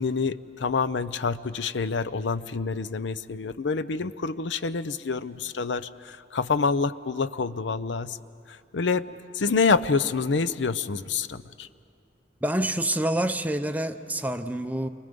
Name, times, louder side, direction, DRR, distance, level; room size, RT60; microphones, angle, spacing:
voice 1, 0.0-8.2 8.5-9.1 9.3-11.7, left 4 dB, 75° left, 14 dB, 0.6 m, -27 dB
voice 2, 12.4-14.9, right 1 dB, 10° right, 9 dB, 0.5 m, -27 dB
29.0 x 23.5 x 5.3 m, 2.5 s
head